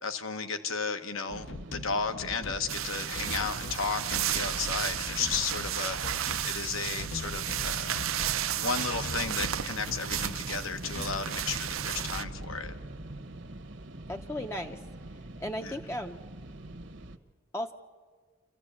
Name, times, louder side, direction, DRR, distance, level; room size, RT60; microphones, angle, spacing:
voice 1, 0.0-8.0 8.5-12.7 15.6-15.7, left 5 dB, 80° left, 7 dB, 1.3 m, -34 dB
sound 1, 1.3-17.2, right 1 dB, 60° right, 1.1 m, -43 dB
sint bass, 1.5-1.9 2.2-2.7 3.2-3.8 4.1-4.6 5.1-5.8 6.0-6.5 7.0-8.4 8.9-9.6 9.9-10.3 10.8-11.2, left 3 dB, 60° left, 0.7 m, -41 dB
sound 2, 2.7-12.2, right 11 dB, 85° right, 0.7 m, -33 dB
voice 2, 14.1-14.8 15.4-16.2 17.5-17.7, left 1 dB, 10° left, 4 dB, 0.6 m, -35 dB
27.0 x 15.0 x 8.6 m, 1.5 s
head